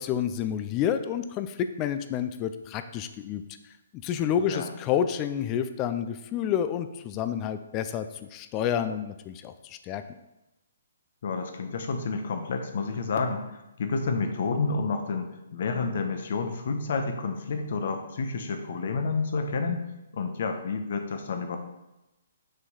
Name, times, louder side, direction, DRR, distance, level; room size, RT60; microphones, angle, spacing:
voice 1, 0.0-3.4 4.0-8.1 8.3-10.0, left 9 dB, 25° left, 10 dB, 0.5 m, -29 dB
voice 2, 4.4-4.7 11.2-19.8 20.1-21.6, left 4 dB, 60° left, 6 dB, 1.0 m, -30 dB
6.4 x 4.7 x 4.1 m, 0.95 s
hypercardioid pair, 140°, 0 cm